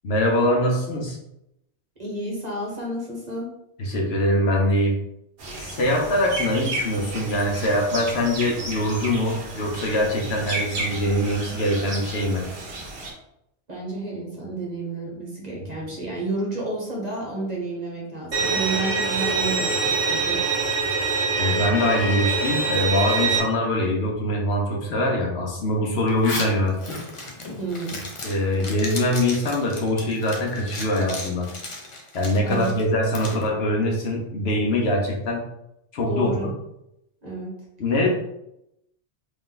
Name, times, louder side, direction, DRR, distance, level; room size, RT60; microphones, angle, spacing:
voice 1, 0.0-1.2 3.8-5.0 5.6-12.4 21.4-27.0 28.2-31.5 32.1-35.4 35.9-36.5 37.8-38.1, left 1 dB, 65° left, 0 dB, 1.0 m, -23 dB
voice 2, 2.0-3.5 13.7-20.4 27.6-28.1 32.4-32.9 36.1-36.5 37.2-37.5, right 2 dB, 40° right, -3 dB, 1.0 m, -31 dB
sound 1, 5.4-13.1, right 2 dB, 60° right, 1.0 m, -33 dB
Bowed string instrument, 18.3-23.4, right 4 dB, 80° right, 1.3 m, -24 dB
Zipper (clothing), 26.1-33.4, left 2 dB, 35° left, 0.6 m, -35 dB
3.5 x 2.5 x 3.7 m, 0.81 s
omnidirectional pair, 1.2 m